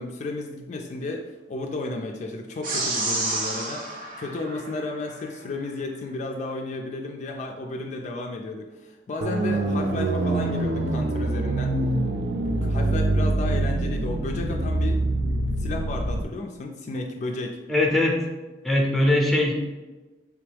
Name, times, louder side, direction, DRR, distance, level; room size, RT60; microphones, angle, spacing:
voice 1, 0.0-11.8 12.3-15.1 15.6-17.6, left 2 dB, 40° left, 3 dB, 0.3 m, -33 dB
sound 1, 2.6-5.3, right 2 dB, 50° right, 0.8 m, -30 dB
sound 2, 9.2-16.2, right 2 dB, 75° right, 0.4 m, -25 dB
voice 2, 17.7-18.2 18.6-19.5, left 1 dB, ahead, 0 dB, 0.6 m, -21 dB
3.4 x 3.4 x 3.4 m, 1.2 s
head